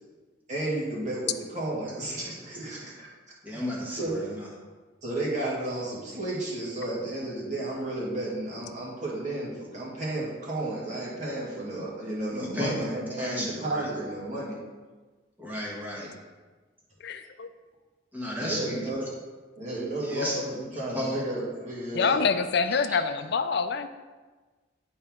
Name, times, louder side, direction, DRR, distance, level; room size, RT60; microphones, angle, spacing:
voice 1, 0.5-3.1 3.5-3.6 4.0-4.2 5.0-14.6 18.4-19.0 19.6-22.2, right 1 dB, 40° right, -6 dB, 2.2 m, -32 dB
voice 2, 3.4-4.5 12.3-12.7 13.1-13.9 15.4-16.1 18.1-19.0 20.0-21.2 22.7-23.0, left 1 dB, 10° right, -4 dB, 1.5 m, -34 dB
voice 3, 17.0-17.5 21.9-23.9, left 5 dB, 60° left, 9 dB, 0.5 m, -26 dB
11.0 x 4.3 x 3.7 m, 1.3 s
head